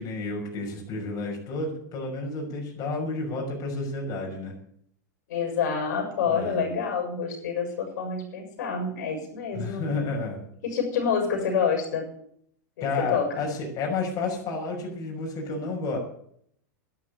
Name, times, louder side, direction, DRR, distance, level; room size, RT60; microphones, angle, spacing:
voice 1, 0.0-4.5 6.3-6.6 9.5-10.4 12.8-16.0, left 3 dB, 40° left, -1 dB, 6.0 m, -31 dB
voice 2, 5.3-9.9 10.6-12.1 12.8-13.4, left 6 dB, 70° left, 3 dB, 7.0 m, -27 dB
12.0 x 11.5 x 8.4 m, 0.66 s
hypercardioid pair, 115°, 10 cm